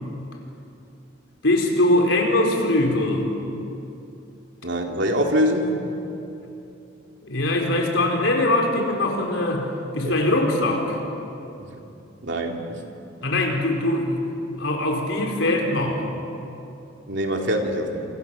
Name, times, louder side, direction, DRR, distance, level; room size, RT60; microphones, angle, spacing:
voice 1, 1.4-3.3 7.2-9.7 9.9-11.0 13.2-14.2 14.6-16.0, left 1 dB, 75° left, 1 dB, 4.7 m, -22 dB
voice 2, 4.6-5.8 10.0-10.1 11.6-11.8 12.2-12.8 17.1-18.1, equal, 65° right, 1 dB, 3.2 m, -24 dB
28.0 x 28.0 x 7.2 m, 2.8 s
head